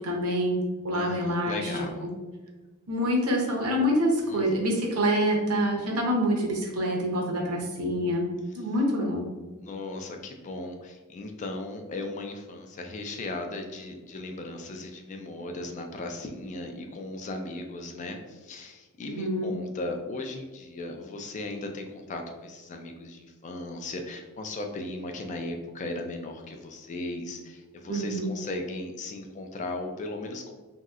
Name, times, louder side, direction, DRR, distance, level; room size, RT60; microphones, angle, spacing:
voice 1, 0.0-1.7 2.9-8.3 8.5-9.3 19.1-19.5 27.9-28.3, equal, 75° right, -1 dB, 0.8 m, -26 dB
voice 2, 0.9-2.1 4.2-4.7 9.6-30.5, left 2 dB, 35° left, 4 dB, 0.3 m, -37 dB
3.0 x 2.7 x 2.4 m, 1.2 s
head